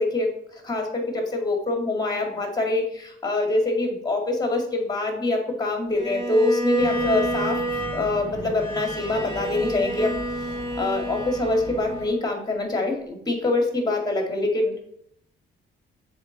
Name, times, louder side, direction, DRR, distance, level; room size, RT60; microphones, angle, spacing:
voice 1, 0.0-7.6 7.9-10.1 10.8-14.8, left 2 dB, 20° left, 3 dB, 2.0 m, -25 dB
Bowed string instrument, 5.9-12.2, right 1 dB, 25° right, 2.2 m, -30 dB
sound 1, 6.8-12.1, right 2 dB, 55° right, 2.7 m, -39 dB
6.9 x 4.4 x 4.0 m, 0.72 s
cardioid pair, 90°, 20 cm